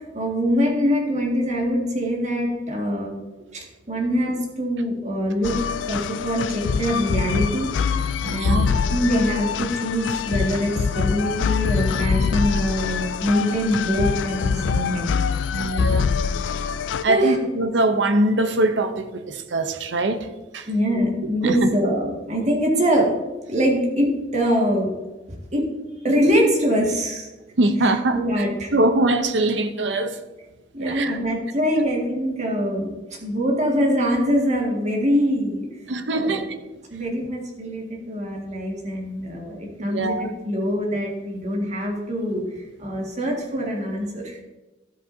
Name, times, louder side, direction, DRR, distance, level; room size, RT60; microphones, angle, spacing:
voice 1, 0.1-3.1 3.5-5.5 5.9-7.7 8.3-8.6 8.9-15.1 17.1-17.4 20.7-23.1 23.5-24.9 25.5-25.7 26.0-27.3 28.1-28.7 30.7-32.9 33.2-35.7 36.1-36.4 36.9-42.4 42.8-44.4, equal, 40° right, 1.9 m, -23 dB
sound 1, 5.4-17.0, left 6 dB, 85° left, 0.4 m, -24 dB
voice 2, 8.2-8.7 15.5-16.1 17.0-20.7 21.4-21.7 27.6-28.4 28.7-30.2 30.8-31.2 31.7-31.8 35.9-36.6 39.8-40.3, right 2 dB, 75° right, 0.7 m, -22 dB
12.5 x 8.0 x 2.7 m
head